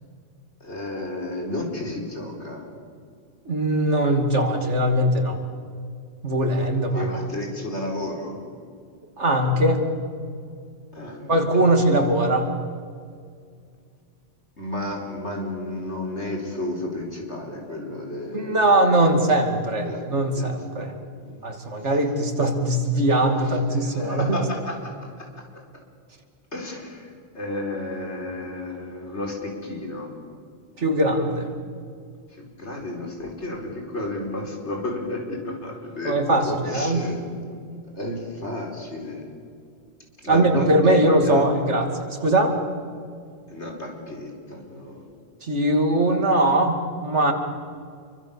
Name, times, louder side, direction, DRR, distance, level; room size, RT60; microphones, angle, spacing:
voice 1, 0.6-2.7 6.9-8.4 10.9-11.3 11.6-11.8 14.6-18.6 19.0-19.3 19.8-20.0 20.3-20.5 21.2-21.6 23.4-24.9 25.2-25.3 26.5-30.1 31.1-31.3 32.3-36.2 36.4-37.2 38.0-39.3 40.2-41.4 43.5-45.0, left 2 dB, 70° left, 1 dB, 4.8 m, -32 dB
voice 2, 3.5-5.4 6.2-7.2 9.2-9.8 11.3-12.5 18.3-20.9 21.4-24.4 30.8-31.5 36.0-37.0 40.3-42.6 45.4-47.3, right 1 dB, 80° right, 4 dB, 2.9 m, -21 dB
28.0 x 24.0 x 7.2 m, 2.2 s
omnidirectional pair, 1.2 m